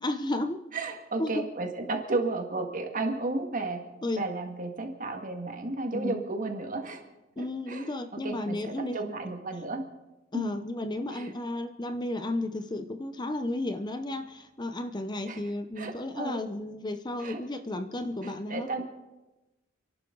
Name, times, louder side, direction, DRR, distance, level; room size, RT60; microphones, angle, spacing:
voice 1, 0.0-0.6 1.2-1.4 4.0-4.2 5.9-6.2 7.4-9.0 10.3-18.8, left 1 dB, 20° left, 8 dB, 0.7 m, -33 dB
voice 2, 0.7-3.8 4.2-7.0 7.4-7.9 8.2-9.9 10.3-10.6 11.1-11.3 15.3-15.4 15.8-16.4 17.2-17.4 18.2-18.8, right 2 dB, 45° right, 4 dB, 2.0 m, -33 dB
29.0 x 12.0 x 3.9 m, 1.1 s
head